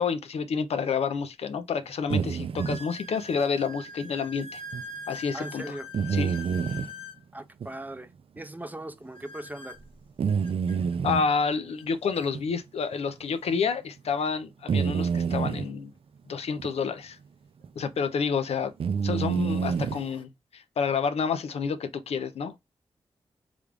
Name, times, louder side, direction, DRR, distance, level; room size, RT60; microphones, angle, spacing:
voice 1, 0.0-4.6 5.1-5.8 6.1-6.4 11.0-15.9 16.3-17.2 17.8-18.7 19.0-22.6, left 5 dB, 80° left, 0.4 m, -29 dB
sound 1, 0.8-0.9 1.6-1.7 2.6-7.2 9.1-10.8 11.8-11.9 12.1-12.3 13.1-13.2 15.4-15.5 17.6-17.7 18.4-18.7 19.3-20.2, left 2 dB, 65° left, 1.0 m, -43 dB
sound 2, 2.1-2.8 4.7-4.8 5.9-6.9 7.6-7.7 8.4-8.5 10.2-11.3 12.3-12.4 12.9-13.0 14.7-15.6 16.6-16.7 17.6-17.8 18.8-20.0, right 6 dB, 65° right, 0.4 m, -27 dB
voice 2, 5.3-5.9 7.3-8.1 8.4-9.8, right 1 dB, 15° right, 0.5 m, -39 dB
3.4 x 2.4 x 3.3 m
cardioid pair, 45°, 10 cm